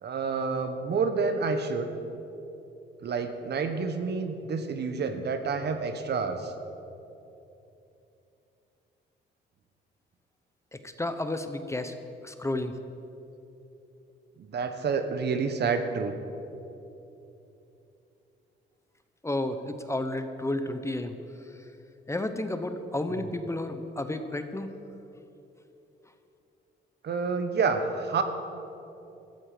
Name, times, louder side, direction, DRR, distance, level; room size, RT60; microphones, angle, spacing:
voice 1, 0.0-1.9 3.0-6.5 14.4-16.1 27.0-28.2, right 5 dB, 55° right, 8 dB, 1.3 m, -29 dB
voice 2, 10.7-11.9 12.2-12.8 19.2-21.1 21.4-21.7 22.1-24.7, left 1 dB, 15° left, 8 dB, 0.9 m, -32 dB
15.5 x 13.5 x 5.1 m, 2.9 s
cardioid pair, 90°, 20 cm